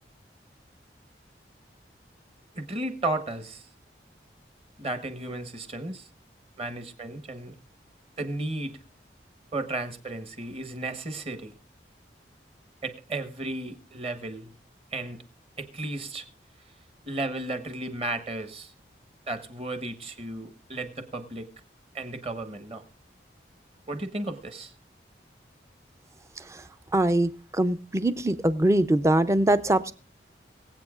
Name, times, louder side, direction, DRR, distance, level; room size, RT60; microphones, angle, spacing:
voice 1, 2.5-3.7 4.8-6.1 6.6-7.5 8.2-8.8 9.5-11.5 12.8-14.5 14.9-15.2 15.6-16.2 17.1-18.7 19.3-21.5 21.9-22.8 23.9-24.7, right 2 dB, 30° right, 8 dB, 1.1 m, -34 dB
voice 2, 26.9-29.9, right 1 dB, 15° right, 12 dB, 0.4 m, -23 dB
24.0 x 8.0 x 2.4 m, 0.41 s
head